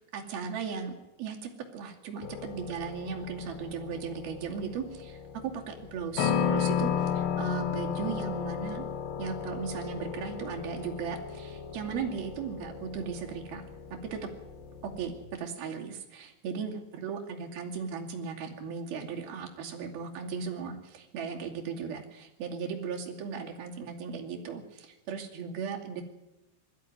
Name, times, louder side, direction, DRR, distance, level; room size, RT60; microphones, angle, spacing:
voice 1, 0.0-5.2 5.4-8.9 9.2-13.6 14.1-14.2 15.0-26.0, right 6 dB, 55° right, 1 dB, 4.0 m, -37 dB
sound 1, 2.2-15.3, left 7 dB, 65° left, 3.3 m, -34 dB
20.5 x 13.5 x 9.6 m, 0.98 s
omnidirectional pair, 5.8 m